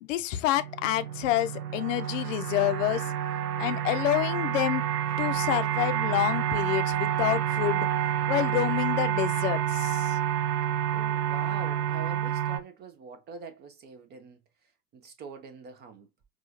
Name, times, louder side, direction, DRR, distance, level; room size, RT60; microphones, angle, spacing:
voice 1, 0.0-3.1 3.6-4.9 5.2-7.9 8.3-10.2, left 14 dB, 55° left, 0.5 m, -28 dB
sound 1, 0.6-12.6, right 10 dB, 75° right, 0.7 m, -29 dB
voice 2, 10.9-14.4 14.9-16.1, right 5 dB, 25° right, 0.4 m, -43 dB
4.8 x 2.4 x 2.4 m
figure-of-eight pair, 80°, 46 cm